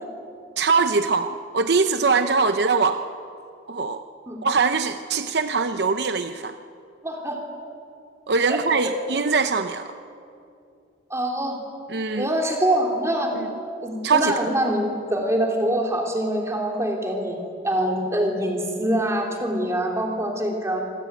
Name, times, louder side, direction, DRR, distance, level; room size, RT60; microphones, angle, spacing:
voice 1, 0.6-3.0 3.7-4.0 4.4-6.5 8.3-9.9 11.9-12.3 14.0-14.3, right 4 dB, 60° right, 9 dB, 0.7 m, -22 dB
voice 2, 7.0-7.4 8.5-8.6 8.8-9.0 11.1-11.6 12.2-13.3 13.8-17.4 17.6-20.8, right 1 dB, 15° right, 1 dB, 3.5 m, -24 dB
26.0 x 19.0 x 9.1 m, 2.5 s
head